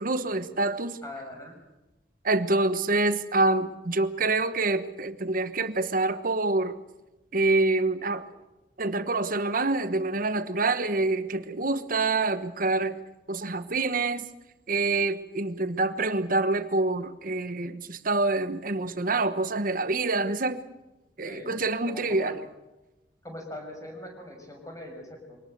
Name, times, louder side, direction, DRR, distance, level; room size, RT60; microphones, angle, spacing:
voice 1, 0.0-1.0 2.2-6.8 7.3-8.2 8.8-13.0 13.3-14.2 14.7-20.6 21.2-22.4, right 3 dB, 50° right, 12 dB, 1.2 m, -26 dB
voice 2, 1.0-1.6 21.2-21.5 21.9-22.3 23.2-25.4, left 1 dB, 20° left, 3 dB, 6.0 m, -41 dB
24.0 x 18.5 x 8.0 m, 1.0 s
head